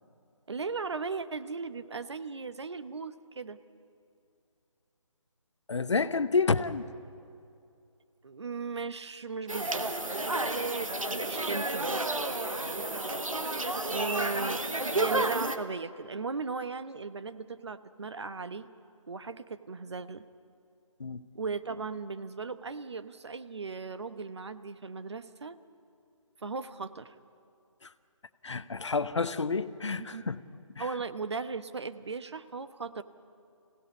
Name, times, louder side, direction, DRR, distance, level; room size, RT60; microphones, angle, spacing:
voice 1, 0.5-3.6 8.2-9.9 11.1-12.0 13.9-14.6 14.9-18.7 19.1-20.2 21.3-25.6 26.4-27.1 30.0-30.2 30.8-33.0, right 4 dB, 55° right, 12 dB, 0.9 m, -37 dB
voice 2, 5.7-6.9 21.0-21.2 27.8-27.9 28.4-30.4 30.7-30.9, left 4 dB, 60° left, 13 dB, 0.9 m, -29 dB
sound 1, 9.5-15.6, right 2 dB, 85° right, 1.5 m, -31 dB
24.0 x 17.0 x 8.3 m, 2.6 s
figure-of-eight pair, 155°, 17 cm